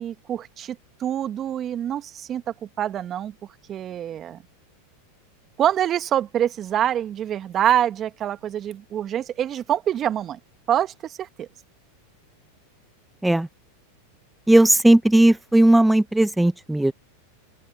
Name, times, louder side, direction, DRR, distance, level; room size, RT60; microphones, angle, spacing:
voice 1, 0.0-2.4 2.8-3.3 3.7-4.4 5.6-10.4 10.7-11.5, right 10 dB, 35° right, 1.8 m, -25 dB
voice 2, 14.5-16.9, right 1 dB, 5° right, 1.3 m, -16 dB
open air
hypercardioid pair, 105°, 0 cm